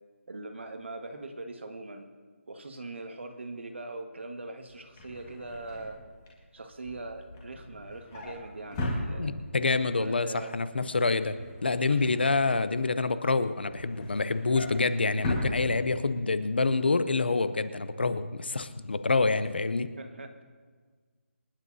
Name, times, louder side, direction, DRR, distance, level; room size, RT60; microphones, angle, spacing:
voice 1, 0.3-2.1 2.5-6.0 6.5-9.4 10.0-10.5 11.9-12.2 20.0-20.4, right 2 dB, 55° right, 5 dB, 1.6 m, -41 dB
Drawer open or close, 4.7-9.7 10.1-10.4 10.7-12.9 13.3-16.3 16.6-16.8 17.1-17.2, left 1 dB, 15° left, 1.8 m, -38 dB
voice 2, 9.2-11.4 11.6-19.9, left 3 dB, 45° left, 12 dB, 0.7 m, -27 dB
28.0 x 9.5 x 2.7 m, 1.5 s
hypercardioid pair, 180°, 7 cm